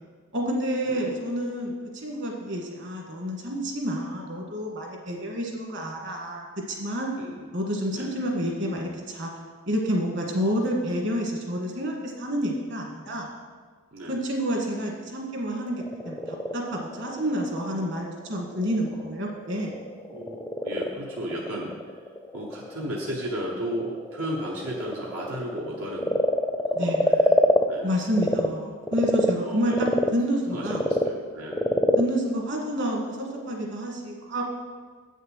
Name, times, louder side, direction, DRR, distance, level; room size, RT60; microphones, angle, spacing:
voice 1, 0.3-7.1 7.5-9.3 9.7-13.3 14.1-19.8 26.7-27.1 27.8-30.8 32.0-34.4, equal, 55° right, 0 dB, 1.8 m, -29 dB
voice 2, 7.2-7.5 7.9-8.1 13.9-14.2 20.1-22.0 22.3-26.2 26.7-27.4 27.7-28.0 29.4-29.9 30.5-31.7, equal, 80° right, -2 dB, 1.1 m, -34 dB
Frog, 15.6-28.5 28.8-33.5, left 1 dB, 10° left, 0.4 m, -27 dB
8.2 x 6.5 x 6.3 m, 1.5 s
head